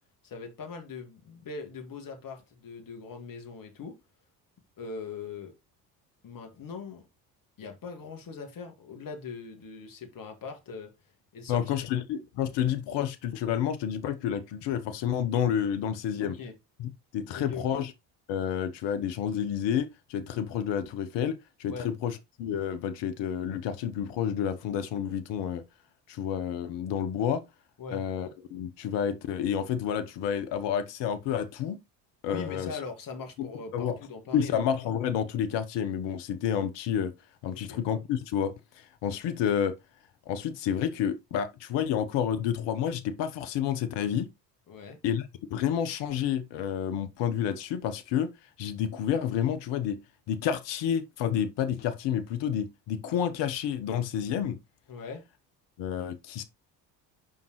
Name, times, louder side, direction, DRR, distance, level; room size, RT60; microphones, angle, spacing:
voice 1, 0.2-3.9 4.8-5.5 6.2-7.1 7.6-10.9 11.3-11.7 16.2-16.5 17.3-17.8 21.7-21.9 27.8-28.0 32.3-34.6 37.5-37.8 44.7-45.0 54.9-55.2, left 4 dB, 40° left, 2.2 m, -41 dB
voice 2, 11.5-16.4 16.8-17.9 18.3-25.6 26.1-27.4 27.9-31.8 32.2-32.7 33.4-34.0 34.3-37.1 37.4-39.7 40.3-44.3 45.0-48.3 48.6-50.0 50.3-54.6 55.8-56.4, left 9 dB, 60° left, 1.1 m, -30 dB
7.3 x 5.4 x 3.1 m
hypercardioid pair, 60°, 49 cm